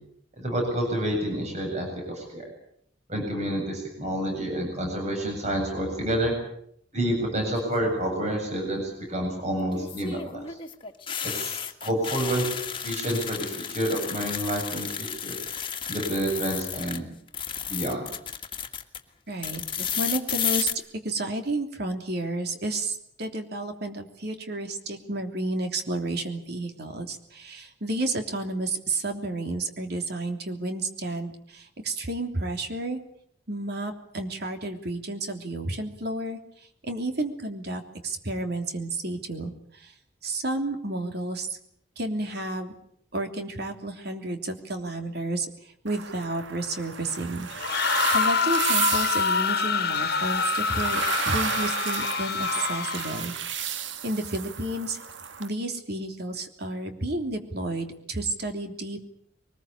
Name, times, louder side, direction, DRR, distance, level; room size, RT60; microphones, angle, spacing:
voice 1, 0.4-2.5 3.1-6.4 6.9-10.6 11.2-12.5 12.8-15.4 15.9-17.0 17.7-18.1, right 1 dB, 40° right, 2 dB, 7.8 m, -29 dB
sound 1, 7.4-7.8 9.7-17.0 17.3-19.0 19.4-20.7, left 8 dB, 30° left, 1.9 m, -33 dB
voice 2, 19.3-20.7 21.0-33.0 33.5-39.9 40.2-41.6 42.0-42.7 43.1-45.5 45.8-47.5 48.1-53.3 54.0-55.0 55.4-59.0, right 2 dB, 60° right, 5 dB, 3.2 m, -31 dB
sound 2, 45.9-55.5, right 7 dB, 85° right, 1.4 m, -33 dB
sound 3, 47.5-53.3, left 5 dB, 60° left, 1.6 m, -26 dB
23.5 x 20.5 x 8.5 m, 0.69 s
head